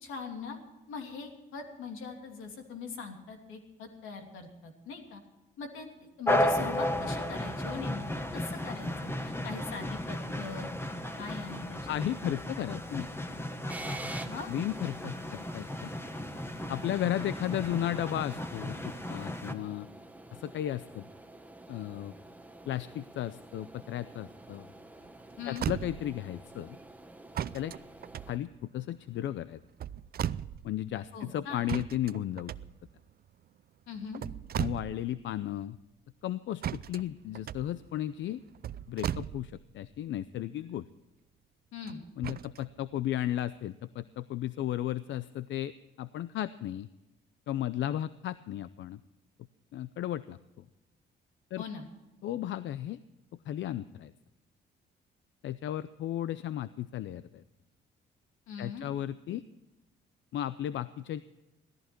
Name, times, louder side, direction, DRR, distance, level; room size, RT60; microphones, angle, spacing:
voice 1, 0.0-0.6 0.9-5.2 5.6-8.0 8.3-10.7 11.2-12.0 14.2-14.5 25.4-25.7 31.1-31.7 33.9-34.2 41.7-42.0 51.6-51.9 58.5-58.9, left 5 dB, 90° left, 3 dB, 2.9 m, -41 dB
sound 1, 6.3-19.5, left 1 dB, 10° left, 1.5 m, -34 dB
voice 2, 11.9-13.1 14.5-15.9 16.7-19.9 20.3-21.1 21.7-22.1 22.7-24.7 25.5-26.8 27.5-27.7 28.3-29.6 30.6-32.5 34.6-35.8 36.2-38.4 38.9-40.8 42.2-45.7 46.0-46.9 47.5-49.0 49.7-50.7 51.5-51.6 52.2-53.0 53.5-54.1 55.4-57.4 58.6-59.4 60.3-61.2, left 12 dB, 70° left, 15 dB, 0.6 m, -34 dB
sound 2, 13.7-28.4, right 2 dB, 10° right, 1.1 m, -48 dB
sound 3, 25.0-25.1 25.4-26.3 27.3-29.0 29.6-30.8 31.7-33.1 34.0-35.2 35.5-35.6 36.6-39.8 41.9-42.6 43.3-43.4, right 10 dB, 50° right, 0.5 m, -37 dB
17.0 x 14.0 x 4.5 m, 1.0 s
cardioid pair, 90°, 20 cm